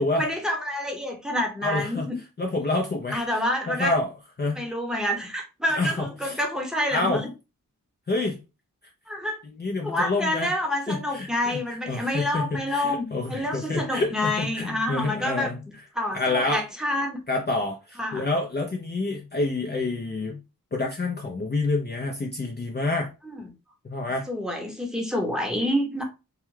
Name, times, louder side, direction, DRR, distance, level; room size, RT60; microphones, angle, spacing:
voice 1, 0.2-2.2 3.1-3.9 4.5-7.3 9.1-9.4 9.8-15.5 15.9-17.2 18.0-18.3 23.2-23.4 24.3-26.0, left 1 dB, ahead, 0.8 m, -28 dB
voice 2, 1.6-2.1 2.4-4.1 4.4-4.6 5.7-6.4 6.9-7.2 8.1-8.4 9.6-10.5 10.9-15.6 16.1-16.6 17.3-20.4 20.7-23.1 23.9-24.3, left 2 dB, 30° left, 0.5 m, -28 dB
2.3 x 2.2 x 3.1 m
cardioid pair, 55°, 34 cm